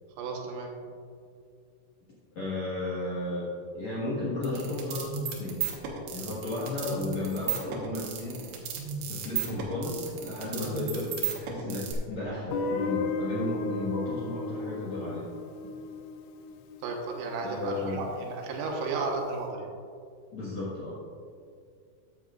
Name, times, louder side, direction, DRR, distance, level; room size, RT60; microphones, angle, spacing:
voice 1, 0.2-0.7 16.8-19.7, right 3 dB, 90° right, 1 dB, 3.9 m, -33 dB
voice 2, 2.4-3.5 3.7-5.6 6.1-8.4 9.0-15.3 15.6-15.7 17.4-18.1 20.3-20.9, left 2 dB, 60° left, -8 dB, 1.9 m, -34 dB
sound 1, 4.4-11.9, right 8 dB, 70° right, 3.2 m, -34 dB
Guitar, 12.5-17.4, left 3 dB, 85° left, 2.5 m, -34 dB
14.0 x 9.3 x 2.5 m, 2.3 s
omnidirectional pair, 5.8 m